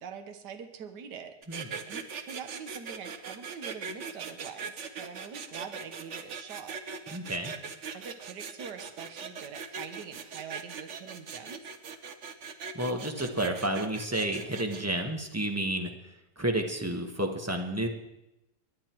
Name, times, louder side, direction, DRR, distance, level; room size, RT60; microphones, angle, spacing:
voice 1, 0.0-6.8 7.9-11.7, right 7 dB, 80° right, 7 dB, 1.6 m, -44 dB
sound 1, 1.4-14.9, right 6 dB, 50° right, 1.2 m, -40 dB
voice 2, 7.1-7.5 12.7-15.9 16.4-17.9, right 1 dB, 10° right, 4 dB, 1.2 m, -31 dB
23.5 x 10.5 x 4.5 m, 0.91 s
omnidirectional pair, 1.8 m